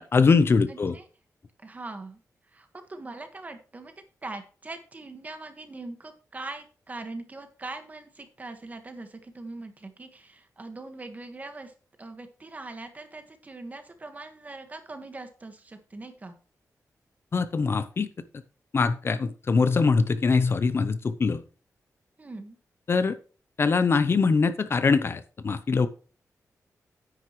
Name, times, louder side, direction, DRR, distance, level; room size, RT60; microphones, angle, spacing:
voice 1, 0.1-1.0 17.3-18.1 18.7-21.4 22.9-23.2 23.6-25.9, left 4 dB, 40° left, 12 dB, 0.7 m, -22 dB
voice 2, 0.6-1.0 1.6-2.2 2.5-3.9 4.2-11.7 12.0-16.3 22.2-22.6, right 2 dB, 25° right, 7 dB, 1.5 m, -41 dB
9.9 x 9.3 x 3.1 m, 0.37 s
wide cardioid pair, 165°, 6 cm